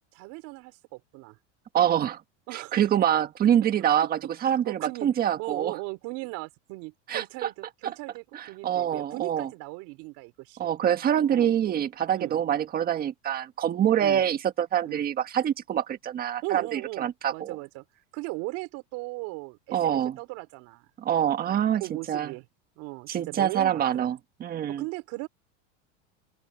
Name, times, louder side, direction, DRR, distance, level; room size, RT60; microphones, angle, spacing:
voice 1, 0.1-1.4 2.5-2.8 4.4-5.1 5.4-10.7 11.3-11.5 12.1-12.4 14.0-14.2 14.8-15.0 16.4-17.8 18.1-20.9 21.8-22.4 22.8-24.1 24.7-25.3, right 25 dB, 50° right, 4.2 m, -38 dB
voice 2, 1.7-2.2 2.5-5.7 7.1-7.5 7.8-7.9 8.3-9.5 10.6-17.6 19.7-20.2 21.0-21.8 22.1-22.3 23.1-24.8, right 10 dB, 25° right, 1.6 m, -25 dB
open air
supercardioid pair, 150°, 35 cm